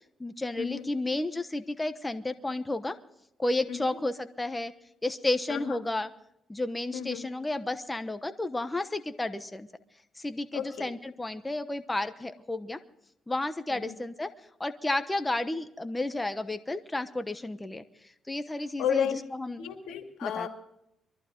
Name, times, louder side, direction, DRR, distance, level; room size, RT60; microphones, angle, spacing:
voice 1, 0.2-3.0 3.4-4.7 5.0-6.1 6.5-9.7 10.2-12.8 13.3-14.3 14.6-17.8 18.3-19.1 19.4-19.6 20.2-20.5, left 2 dB, 15° left, 10 dB, 1.0 m, -32 dB
voice 2, 5.5-5.8 6.9-7.2 10.5-10.9 13.7-13.9 18.8-19.1 19.6-20.5, left 9 dB, 85° left, 4 dB, 2.6 m, -33 dB
23.5 x 14.5 x 3.8 m, 0.78 s
cardioid pair, 90°, 0 cm